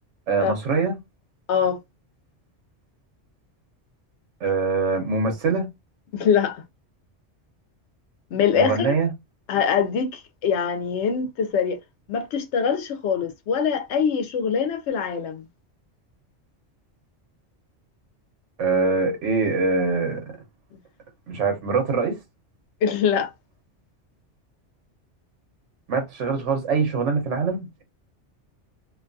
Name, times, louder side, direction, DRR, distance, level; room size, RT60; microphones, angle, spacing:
voice 1, 0.3-1.0 4.4-5.7 8.5-9.1 18.6-20.2 21.3-22.2 25.9-27.8, right 4 dB, 90° right, 1.1 m, -23 dB
voice 2, 6.1-6.6 8.3-8.9 9.5-11.8 12.1-15.5 22.8-23.3, left 7 dB, 75° left, 0.9 m, -23 dB
2.5 x 2.3 x 2.5 m
omnidirectional pair, 1.2 m